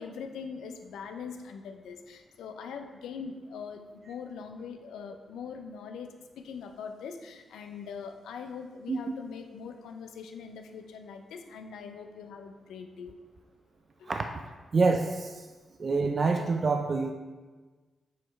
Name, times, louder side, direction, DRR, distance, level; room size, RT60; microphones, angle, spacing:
voice 1, 0.0-6.1 6.4-13.1 14.0-14.2, left 6 dB, 90° left, 6 dB, 0.5 m, -42 dB
voice 2, 14.7-15.5 15.8-17.1, right 4 dB, 50° right, 4 dB, 0.4 m, -26 dB
7.5 x 3.1 x 4.5 m, 1.3 s
cardioid pair, 60°, 0 cm